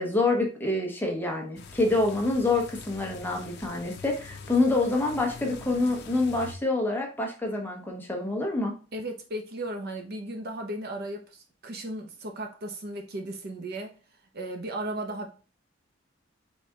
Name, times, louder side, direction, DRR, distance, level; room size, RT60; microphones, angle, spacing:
voice 1, 0.0-8.7, left 2 dB, 10° left, 0 dB, 0.9 m, -27 dB
sound 1, 1.6-6.5, left 4 dB, 60° left, 0.6 m, -44 dB
voice 2, 8.9-14.0 14.3-15.3, right 1 dB, 55° right, 3 dB, 0.8 m, -35 dB
4.2 x 3.4 x 3.6 m, 0.35 s
head